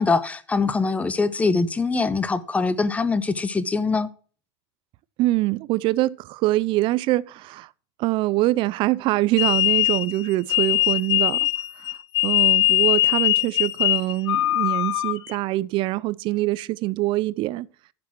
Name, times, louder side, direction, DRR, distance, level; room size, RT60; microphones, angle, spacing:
voice 1, 0.0-4.1, left 4 dB, 10° left, 0.7 m, -23 dB
voice 2, 5.2-7.7 8.0-11.5 12.2-17.7, right 18 dB, 35° right, 0.4 m, -24 dB
sound 1, 9.4-15.4, left 16 dB, 80° left, 0.4 m, -21 dB
8.5 x 6.1 x 6.1 m
supercardioid pair, 130°, 14 cm